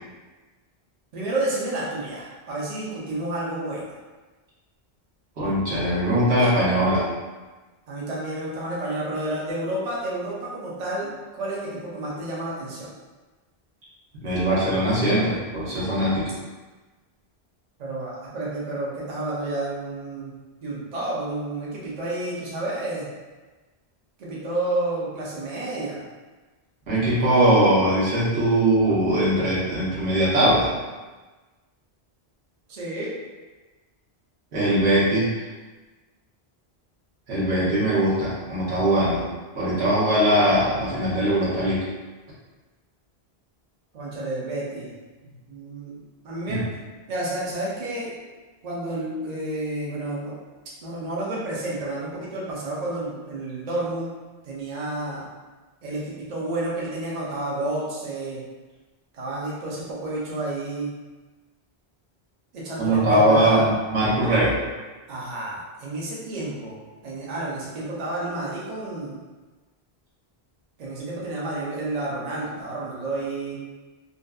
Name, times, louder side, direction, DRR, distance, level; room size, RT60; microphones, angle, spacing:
voice 1, 1.1-3.8 6.4-6.5 7.9-12.9 17.8-20.3 20.6-23.1 24.2-26.0 32.7-33.2 43.9-44.9 45.2-46.0 46.2-46.6 47.1-48.1 48.6-50.3 50.8-54.1 54.4-55.3 55.8-58.4 59.1-61.0 62.5-63.6 65.1-69.2 70.8-73.6, right 2 dB, 45° right, -6 dB, 0.6 m, -30 dB
voice 2, 5.4-7.1 14.2-16.3 26.9-30.7 34.5-35.3 37.3-39.2 39.6-41.8 46.5-46.6 62.8-64.6, right 1 dB, 80° right, -9 dB, 1.1 m, -21 dB
2.5 x 2.4 x 2.3 m, 1.3 s
omnidirectional pair, 1.1 m